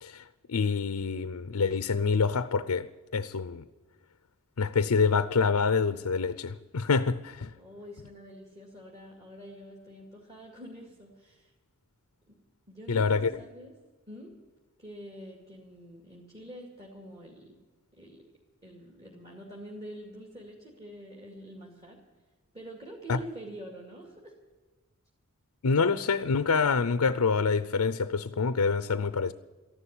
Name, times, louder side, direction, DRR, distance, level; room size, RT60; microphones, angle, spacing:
voice 1, 0.0-3.6 4.6-7.5 12.9-13.3 23.1-23.2 25.6-29.3, left 5 dB, 85° left, 0.6 m, -26 dB
voice 2, 7.6-11.5 12.3-12.4 12.7-13.7 14.1-14.3 14.8-17.6 17.9-18.2 18.6-22.0 22.5-24.4, equal, 25° right, 2.4 m, -46 dB
14.0 x 11.5 x 8.5 m
head